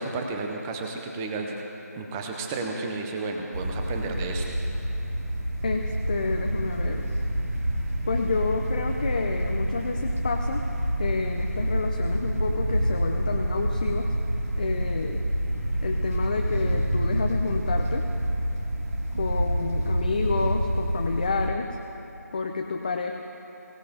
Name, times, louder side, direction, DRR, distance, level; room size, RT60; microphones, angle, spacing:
voice 1, 0.0-1.6 2.0-4.6, right 3 dB, 10° right, 2 dB, 0.7 m, -32 dB
sound 1, 3.5-21.5, equal, 60° right, 2.9 m, -27 dB
voice 2, 5.6-7.1 8.1-10.7 11.0-14.1 14.6-15.3 15.8-18.1 19.2-21.8 22.3-23.1, left 4 dB, 30° left, 3 dB, 0.6 m, -29 dB
23.5 x 17.0 x 2.9 m, 2.9 s
figure-of-eight pair, 160°, 9 cm